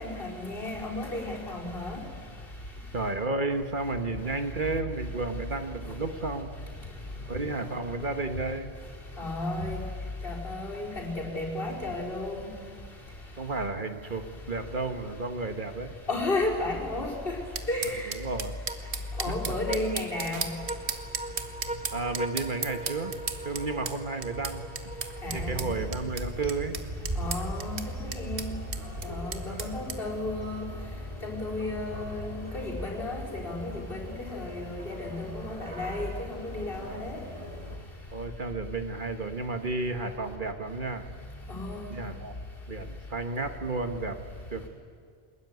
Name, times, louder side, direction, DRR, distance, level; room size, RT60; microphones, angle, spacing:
voice 1, 0.0-2.0 9.2-9.8 10.2-12.5 16.1-17.4 17.7-18.1 19.2-20.4 25.2-25.8 27.2-28.6 29.0-30.7 31.2-37.2 41.5-41.9, left 2 dB, 55° left, -2 dB, 4.8 m, -33 dB
voice 2, 2.9-6.6 7.2-8.7 13.4-15.9 18.0-18.6 19.3-19.5 21.9-23.1 23.4-24.7 25.3-26.8 28.7-29.0 29.4-29.7 36.8-37.1 38.1-41.1 41.9-42.4 42.7-44.2 44.5-44.7, right 3 dB, 50° right, 7 dB, 1.5 m, -32 dB
sound 1, 17.6-30.0, right 5 dB, 80° right, 1.6 m, -36 dB
sound 2, 18.7-26.2, right 2 dB, 10° right, 0.4 m, -41 dB
sound 3, 25.2-37.8, equal, 30° right, 2.8 m, -39 dB
22.0 x 20.5 x 9.5 m, 2.1 s
omnidirectional pair, 1.1 m